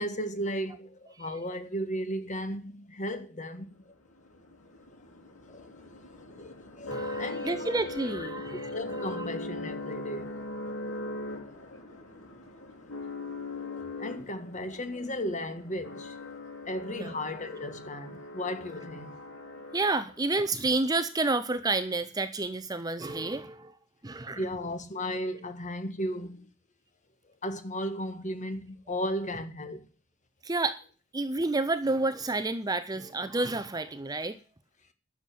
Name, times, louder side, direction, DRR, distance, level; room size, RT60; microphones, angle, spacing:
voice 1, 0.0-3.9 5.5-5.9 6.3-7.8 8.7-10.4 13.5-16.4 16.6-19.2 24.4-26.5 27.4-29.9, equal, 35° left, 1.7 m, -35 dB
sound 1, 4.0-20.3, left 2 dB, 75° left, 5.2 m, -40 dB
voice 2, 6.9-8.7 9.1-9.2 16.9-17.1 19.7-23.7 24.0-24.4 30.4-30.8 31.1-34.4, right 2 dB, 15° right, 0.6 m, -30 dB
11.5 x 7.2 x 9.2 m
head